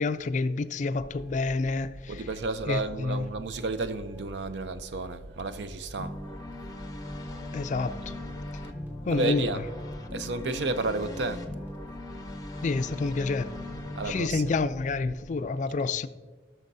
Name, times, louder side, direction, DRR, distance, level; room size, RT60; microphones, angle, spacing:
voice 1, 0.0-2.2 2.7-3.3 7.5-7.9 9.1-9.6 12.6-13.5 14.1-16.1, left 3 dB, 45° left, 0.3 m, -28 dB
sound 1, 1.0-15.3, equal, 15° right, 2.3 m, -46 dB
voice 2, 2.1-6.2 7.3-7.4 9.1-9.6 10.1-11.5 14.0-14.5, right 3 dB, 75° right, 0.5 m, -32 dB
sound 2, 6.0-14.2, left 1 dB, 20° left, 0.9 m, -39 dB
18.0 x 6.3 x 2.7 m
head